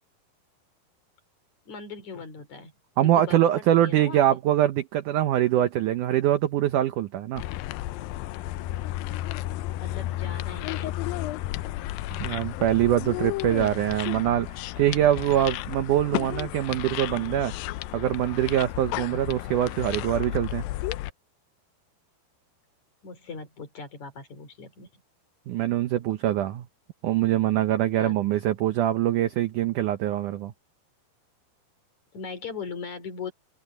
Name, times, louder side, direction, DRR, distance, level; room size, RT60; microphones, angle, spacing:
voice 1, 1.7-2.7 3.0-4.4 9.8-11.3 23.0-25.0 28.0-28.2 32.1-33.3, left 5 dB, 45° left, 4.4 m, -39 dB
voice 2, 3.0-7.4 12.1-17.5 17.9-20.6 25.5-26.6 27.0-30.5, right 12 dB, 85° right, 1.8 m, -24 dB
sound 1, 7.4-21.1, left 16 dB, 85° left, 2.1 m, -33 dB
omnidirectional pair, 4.8 m